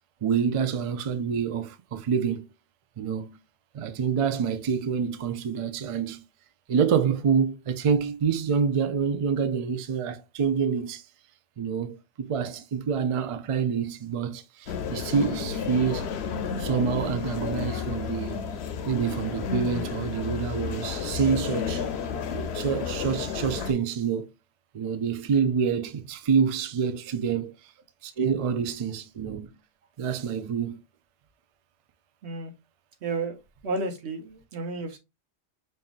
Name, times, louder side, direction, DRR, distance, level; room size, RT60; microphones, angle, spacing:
voice 1, 0.2-2.4 3.0-3.4 3.7-6.2 6.7-11.0 11.6-16.1 16.6-18.5 18.9-21.9 22.3-24.3 24.7-27.5 28.0-29.5 30.0-30.8, right 6 dB, 55° right, 0.4 m, -27 dB
sound 1, 14.7-23.7, left 6 dB, 75° left, 0.9 m, -31 dB
voice 2, 33.0-35.0, right 3 dB, 85° right, 1.2 m, -32 dB
5.4 x 2.6 x 2.3 m
omnidirectional pair, 1.1 m